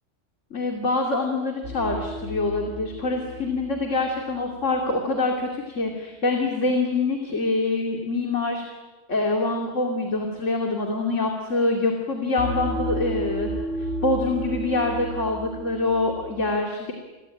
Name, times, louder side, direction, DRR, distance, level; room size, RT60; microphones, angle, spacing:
voice 1, 0.5-8.6 9.1-16.9, left 3 dB, 80° left, 2 dB, 3.1 m, -25 dB
sound 1, 1.6-4.7 12.4-16.4, right 2 dB, 85° right, 8.1 m, -33 dB
30.0 x 22.0 x 9.0 m, 1.2 s
omnidirectional pair, 1.3 m